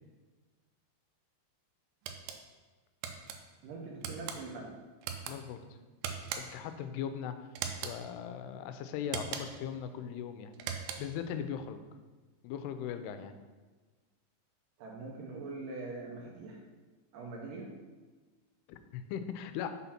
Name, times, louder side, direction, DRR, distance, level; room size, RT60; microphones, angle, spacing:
sound 1, 2.1-2.4 3.0-3.4 4.0-4.4 5.0-5.4 6.0-6.7 7.6-8.0 9.1-9.6 10.5-11.2, right 7 dB, 90° right, 2.7 m, -39 dB
voice 1, 3.6-4.7 14.8-16.6 17.1-17.7, right 3 dB, 70° right, -1 dB, 2.2 m, -42 dB
voice 2, 5.3-5.6 6.4-7.3 7.8-10.5 11.0-11.8 12.4-13.4 18.7-19.7, left 8 dB, 90° left, 9 dB, 2.6 m, -39 dB
6.2 x 4.1 x 5.7 m, 1.3 s
omnidirectional pair, 4.6 m